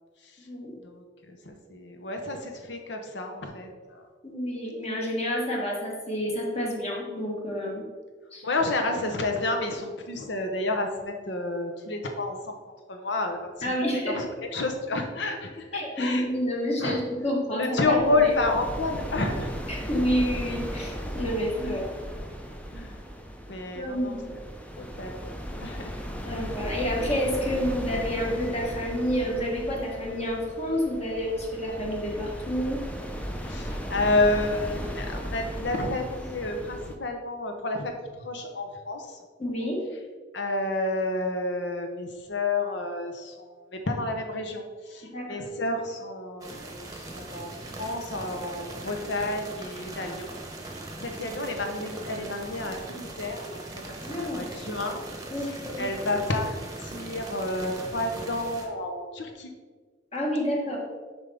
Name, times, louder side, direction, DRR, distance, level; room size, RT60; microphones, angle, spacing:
voice 1, 0.7-4.0 8.4-12.6 12.9-16.3 16.8-17.0 17.5-19.5 21.6-21.8 22.7-23.0 23.5-24.4 24.8-25.3 25.6-26.2 33.4-39.2 40.3-50.3 50.7-55.0 55.4-59.5, left 2 dB, 70° left, 5 dB, 0.9 m, -30 dB
voice 2, 4.2-7.9 8.3-8.4 13.6-14.2 15.7-18.3 19.7-21.9 23.7-24.3 26.2-32.8 39.4-39.8 45.1-45.4 54.0-54.4 55.3-55.9 60.1-60.8, equal, 35° left, -2 dB, 1.4 m, -29 dB
sound 1, 18.0-37.0, equal, 10° left, 0.5 m, -36 dB
sound 2, 46.4-58.7, right 2 dB, 20° right, 0.9 m, -40 dB
7.3 x 5.3 x 3.5 m, 1.5 s
head